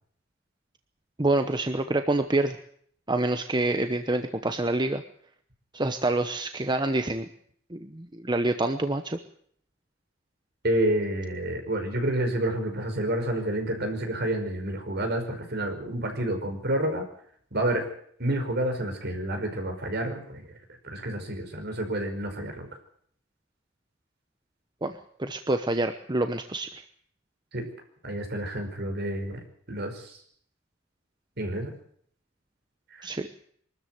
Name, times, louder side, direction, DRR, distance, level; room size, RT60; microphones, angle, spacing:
voice 1, 1.2-2.6 3.1-5.0 5.7-7.3 7.7-9.2 24.8-26.7 33.0-33.3, right 2 dB, 25° right, 8 dB, 1.0 m, -27 dB
voice 2, 10.6-17.0 17.5-17.8 18.2-20.6 20.8-22.7 27.5-27.7 28.0-29.4 29.7-30.2 31.4-31.7 33.0-33.1, right 1 dB, 55° right, 5 dB, 5.4 m, -29 dB
24.0 x 13.5 x 9.3 m, 0.63 s
head